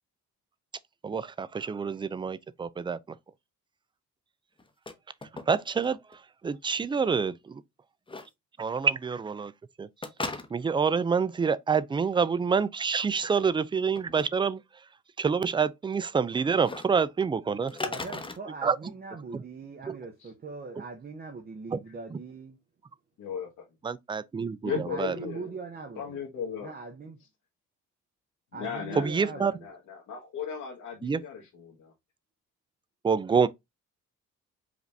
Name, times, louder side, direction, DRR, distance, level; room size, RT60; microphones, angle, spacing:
voice 1, 1.0-3.0 5.5-7.6 8.6-9.5 9.8-9.9 10.5-14.6 15.2-17.7 18.6-18.8 19.3-19.4 19.9-20.0 21.7-21.8 22.1-22.2 23.8-25.2 29.0-29.5 31.0-31.2 33.0-33.5, right 5 dB, 15° right, 0.3 m, -27 dB
sound 1, 4.6-4.9 5.2-5.9 6.1-6.2 8.1-8.3 10.0-10.8 13.1-13.5 13.9-14.3 16.6-16.9 17.7-18.4, left 3 dB, 15° left, 0.9 m, -36 dB
voice 2, 17.8-22.6 24.7-26.2 26.6-27.2 28.5-29.7, right 4 dB, 30° right, 0.7 m, -41 dB
voice 3, 23.2-23.6 24.6-25.5 26.0-26.7 28.5-31.9, left 6 dB, 75° left, 1.3 m, -36 dB
4.9 x 2.5 x 3.3 m
cardioid pair, 90°, 30 cm